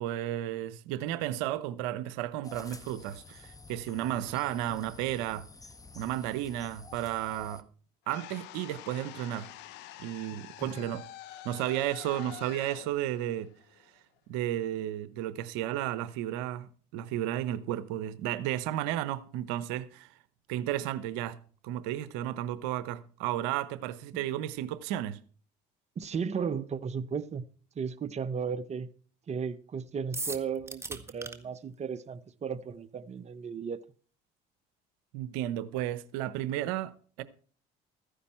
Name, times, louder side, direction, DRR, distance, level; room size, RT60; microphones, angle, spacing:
voice 1, 0.0-5.5 6.0-7.6 8.1-9.5 10.0-11.0 11.4-13.5 14.3-20.1 20.5-21.4 21.6-25.2 35.1-37.2, right 12 dB, 85° right, 0.8 m, -33 dB
sound 1, 2.4-7.6, left 3 dB, 20° left, 1.3 m, -50 dB
sound 2, 8.1-14.2, left 14 dB, 80° left, 1.2 m, -47 dB
voice 2, 10.6-10.9 26.0-27.5 27.8-28.9 29.3-33.8, right 6 dB, 40° right, 1.1 m, -35 dB
sound 3, 30.1-31.4, right 2 dB, 15° right, 1.8 m, -37 dB
14.0 x 10.0 x 4.4 m
supercardioid pair, 80°, 18 cm